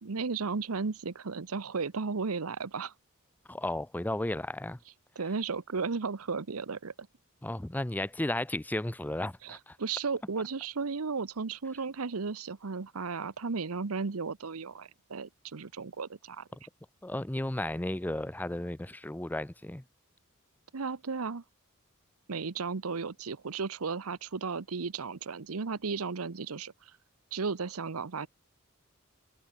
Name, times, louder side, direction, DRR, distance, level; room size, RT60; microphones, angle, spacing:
voice 1, 0.0-2.9 5.2-6.9 9.4-16.5 20.7-21.4 22.3-26.9 27.3-28.3, right 4 dB, 85° right, 0.9 m, -34 dB
voice 2, 3.5-4.8 7.4-9.8 17.0-19.8, left 1 dB, 10° left, 0.6 m, -34 dB
head